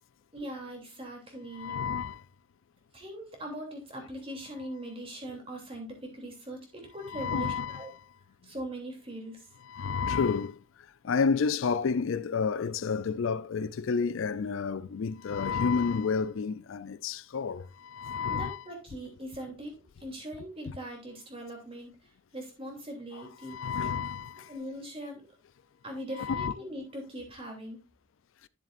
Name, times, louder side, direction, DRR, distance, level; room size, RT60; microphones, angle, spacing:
voice 1, 0.3-1.8 2.9-7.9 8.4-9.5 18.3-22.0 22.3-23.6 24.5-25.2 25.8-27.8, right 1 dB, 30° right, 3.0 m, -41 dB
voice 2, 1.5-2.2 7.1-7.9 9.7-10.6 11.0-18.6 23.5-24.5 26.2-26.5, left 5 dB, 75° left, 0.4 m, -30 dB
11.0 x 7.4 x 2.5 m
head